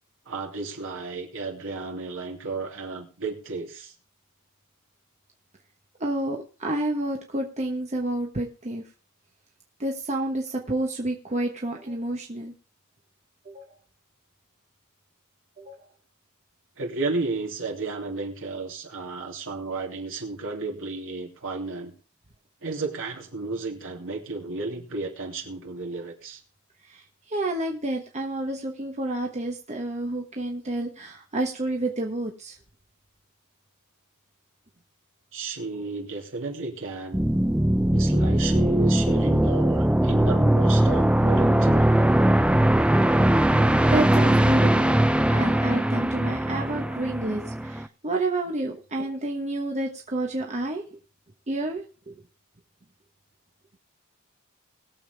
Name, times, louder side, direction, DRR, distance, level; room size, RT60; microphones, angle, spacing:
voice 1, 0.2-3.9 16.8-21.9 22.6-26.4 35.3-37.2 37.9-41.9, right 3 dB, 65° right, 0 dB, 3.0 m, -33 dB
voice 2, 6.0-8.8 9.8-12.5 13.4-13.7 15.6-15.8 26.9-32.6 43.9-45.0 45.3-50.8 51.5-52.2, right 2 dB, 30° right, 1 dB, 1.2 m, -29 dB
sound 1, 37.1-47.9, right 1 dB, 5° right, 0.4 m, -20 dB
21.0 x 7.2 x 3.4 m, 0.38 s
head